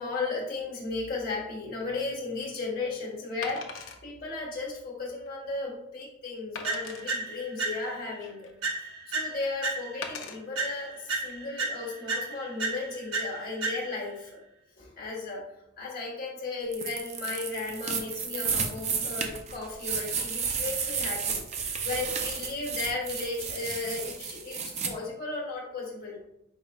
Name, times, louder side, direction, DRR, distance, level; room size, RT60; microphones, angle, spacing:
voice 1, 0.0-8.5 9.1-14.3 14.8-15.4 15.8-26.2, left 3 dB, 45° left, -2 dB, 1.4 m, -35 dB
Wood, 1.8-2.0 3.4-4.0 4.6-4.7 5.2-5.3 6.5-7.0 7.8-8.6 10.0-10.4 11.1-11.3, left 5 dB, 75° left, 0.6 m, -40 dB
sound 1, 6.6-8.1 8.6-10.2 10.6-14.2, right 3 dB, 70° right, 0.9 m, -34 dB
sound 2, 16.7-24.9, right 6 dB, 35° right, 0.5 m, -32 dB
4.8 x 4.1 x 2.3 m, 0.82 s
head